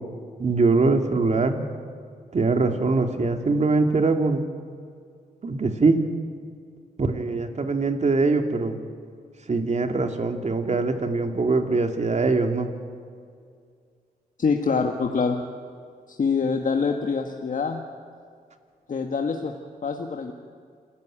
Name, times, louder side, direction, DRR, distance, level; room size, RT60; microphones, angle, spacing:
voice 1, 0.4-1.7 2.3-4.4 5.4-6.0 7.0-8.8 9.5-12.7, right 3 dB, 45° right, 5 dB, 2.6 m, -22 dB
voice 2, 14.4-15.4 16.1-17.8 18.9-19.5 19.8-20.3, left 5 dB, 55° left, 3 dB, 1.8 m, -25 dB
28.0 x 15.0 x 9.1 m, 2.2 s
cardioid pair, 70°, 16 cm